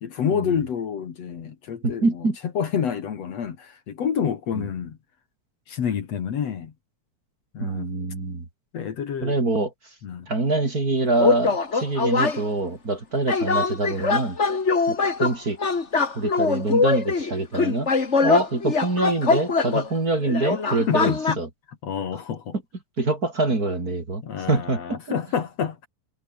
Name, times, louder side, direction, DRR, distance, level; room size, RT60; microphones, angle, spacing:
voice 1, 0.0-2.2 2.5-5.0 5.7-6.7 7.5-8.0 8.7-9.4 10.0-10.3 20.9-21.4 21.8-22.5 24.2-25.9, left 7 dB, 60° left, 3.0 m, -28 dB
voice 2, 1.8-2.4 4.5-4.7 7.6-8.5 9.2-9.9 10.3-14.4 14.9-15.6 16.1-17.9 18.2-21.5 23.0-24.2 24.5-25.0, right 2 dB, 30° right, 4.0 m, -25 dB
sound 1, 11.2-12.4 13.3-19.9 20.2-21.4, left 4 dB, 25° left, 2.0 m, -22 dB
omnidirectional pair, 3.4 m